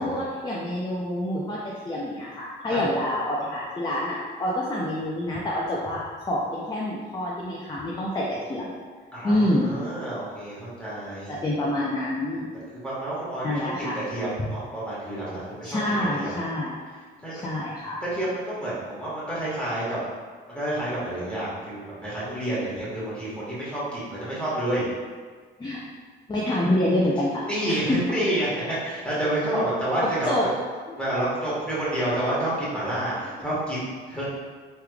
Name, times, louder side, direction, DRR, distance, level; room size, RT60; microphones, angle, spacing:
voice 1, 0.0-8.8 9.2-9.7 11.3-12.5 13.4-14.0 15.6-16.7 17.3-18.0 25.6-25.8 26.3-28.0 30.0-30.5 30.9-31.0 33.1-33.3, left 1 dB, 20° left, -5 dB, 0.5 m, -27 dB
voice 2, 9.1-11.4 12.7-13.7 13.9-15.8 16.2-16.3 17.2-17.4 18.1-20.0 20.5-24.8 27.5-27.8 28.1-28.5 28.8-30.4 31.0-34.3, right 1 dB, 5° left, -9 dB, 1.5 m, -29 dB
3.3 x 3.1 x 2.4 m, 1.5 s
cardioid pair, 90°, 20 cm